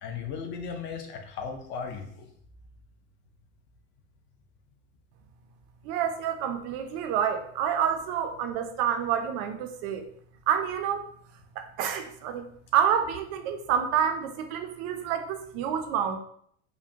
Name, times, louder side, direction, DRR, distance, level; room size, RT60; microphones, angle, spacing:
voice 1, 0.0-2.3, left 6 dB, 35° left, 5 dB, 0.5 m, -36 dB
voice 2, 5.8-10.0 10.5-11.1 11.6-12.4 12.7-16.2, right 8 dB, 45° right, 7 dB, 0.5 m, -28 dB
4.9 x 2.2 x 2.7 m, 0.65 s
supercardioid pair, 145°, 35 cm